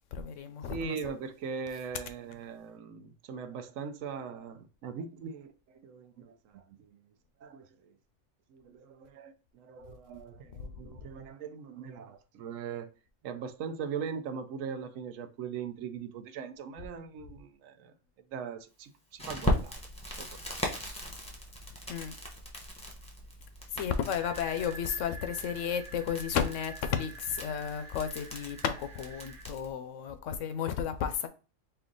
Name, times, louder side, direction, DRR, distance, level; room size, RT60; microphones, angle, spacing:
voice 1, 0.1-1.0 10.6-10.7 21.9-22.1 23.7-31.3, left 8 dB, 75° left, 0.9 m, -33 dB
voice 2, 0.7-7.0 7.4-7.9 8.5-12.9 13.2-17.9 18.3-19.8 20.2-20.3, right 6 dB, 85° right, 1.0 m, -40 dB
Crackle, 19.2-29.7, left 1 dB, 5° left, 0.8 m, -38 dB
sound 1, 24.2-29.4, right 2 dB, 55° right, 0.6 m, -47 dB
4.4 x 2.5 x 3.8 m
omnidirectional pair, 1.3 m